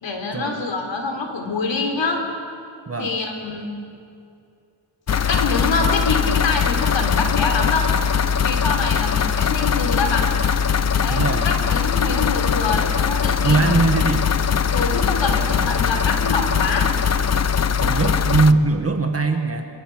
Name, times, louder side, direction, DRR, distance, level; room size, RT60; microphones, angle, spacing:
voice 1, 0.0-2.2 3.0-3.8 5.3-7.9 8.4-10.3 11.0-13.8 14.7-16.9 17.9-18.1, left 3 dB, 85° left, 3 dB, 3.7 m, -25 dB
sound 1, 5.1-18.5, left 7 dB, 35° left, 0.6 m, -21 dB
voice 2, 11.1-11.5 13.4-14.2 17.8-19.7, right 3 dB, 30° right, 5 dB, 1.4 m, -20 dB
26.5 x 23.0 x 6.2 m, 2.5 s
wide cardioid pair, 155°, 44 cm